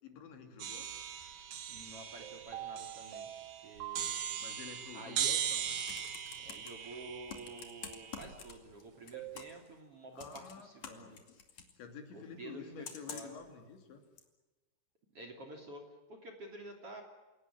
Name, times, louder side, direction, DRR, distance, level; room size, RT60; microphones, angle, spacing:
voice 1, 0.0-0.9 4.4-5.8 10.1-11.2 11.8-14.0, left 6 dB, 70° left, 5 dB, 5.2 m, -50 dB
sound 1, 0.6-8.5, right 9 dB, 55° right, 3.3 m, -39 dB
voice 2, 1.7-3.3 3.6-4.1 4.9-5.3 6.4-11.2 12.1-13.3 15.1-17.0, right 2 dB, 35° right, 3 dB, 3.4 m, -50 dB
sound 2, 2.2-5.0 9.1-9.6, right 12 dB, 90° right, 4.6 m, -46 dB
Computer keyboard, 5.3-6.7 7.3-8.8 9.1-9.7 10.2-11.7 12.8-13.4 14.2-14.3, left 7 dB, 45° left, 3.1 m, -47 dB
28.5 x 18.0 x 10.0 m, 1.1 s
omnidirectional pair, 5.4 m